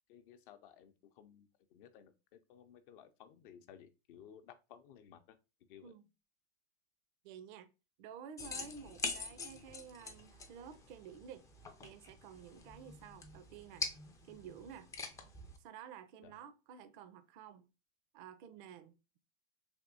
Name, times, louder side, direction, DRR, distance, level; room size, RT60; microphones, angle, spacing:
voice 1, 0.1-5.4 5.7-5.9 16.2-16.3, left 9 dB, 55° left, 0.6 m, -58 dB
voice 2, 7.2-7.7 8.0-11.5 11.8-13.9 14.3-14.9 15.6-17.7 18.1-18.9, right 8 dB, 50° right, 0.5 m, -52 dB
sound 1, 8.4-15.6, left 4 dB, 10° left, 0.3 m, -45 dB
3.5 x 2.7 x 2.5 m
hypercardioid pair, 100°, 32 cm